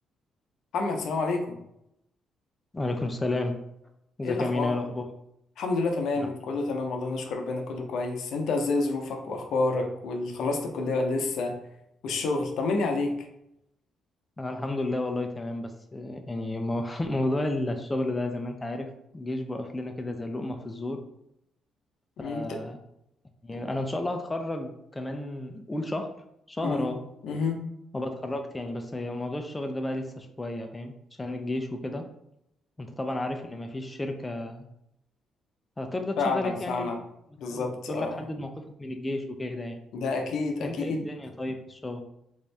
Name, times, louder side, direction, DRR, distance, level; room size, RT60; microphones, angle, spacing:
voice 1, 0.7-1.6 4.2-4.7 5.6-11.6 12.0-13.3 22.2-22.6 23.5-23.6 26.6-26.9 27.2-27.6 36.2-37.0 37.4-38.2 39.9-41.1, left 3 dB, 75° left, 3 dB, 0.6 m, -29 dB
voice 2, 2.7-3.6 4.2-5.1 6.2-6.3 14.4-21.0 22.2-22.8 23.4-26.1 26.5-27.0 27.9-30.9 31.2-32.1 32.8-34.7 35.8-36.9 37.5-38.5 38.8-39.8 40.6-42.0, left 2 dB, 15° left, 4 dB, 0.4 m, -32 dB
3.5 x 2.6 x 3.3 m, 0.80 s
cardioid pair, 90°, 0 cm